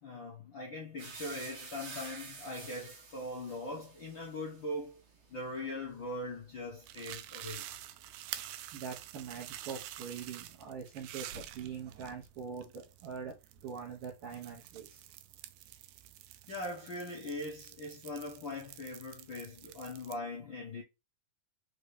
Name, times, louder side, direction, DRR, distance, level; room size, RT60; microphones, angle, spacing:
voice 1, 0.0-5.0 5.3-7.6 16.5-20.8, left 1 dB, 65° left, 1.2 m, -41 dB
sound 1, 1.0-8.9 9.2-10.4, right 4 dB, 45° right, 2.0 m, -51 dB
sound 2, 6.8-20.1, right 12 dB, 80° right, 1.9 m, -48 dB
voice 2, 8.7-13.3 13.6-15.0, right 6 dB, 65° right, 1.4 m, -43 dB
5.3 x 2.8 x 3.3 m
omnidirectional pair, 3.9 m